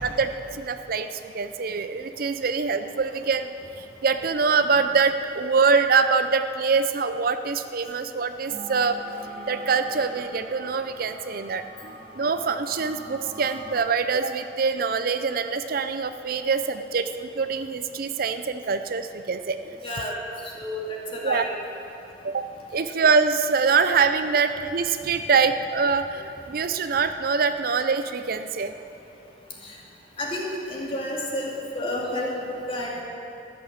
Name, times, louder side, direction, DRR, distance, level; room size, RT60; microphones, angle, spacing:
voice 1, 0.0-9.0 9.5-19.8 21.2-21.5 22.2-28.7, right 5 dB, 55° right, 9 dB, 0.5 m, -24 dB
sound 1, 8.5-13.7, equal, 90° right, 3.1 m, -41 dB
voice 2, 19.8-20.1 20.6-21.5 29.6-29.8 30.2-32.4 32.7-33.0, left 1 dB, 30° left, -2 dB, 2.4 m, -30 dB
13.0 x 11.5 x 7.3 m, 2.7 s
head